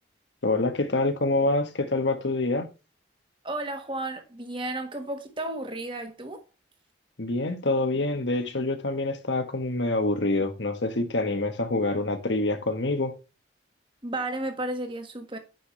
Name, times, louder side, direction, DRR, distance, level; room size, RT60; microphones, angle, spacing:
voice 1, 0.4-2.7 7.2-13.1, left 2 dB, 70° left, 1.4 m, -26 dB
voice 2, 3.4-6.4 14.0-15.4, right 2 dB, 25° right, 1.5 m, -33 dB
9.2 x 6.0 x 3.2 m
head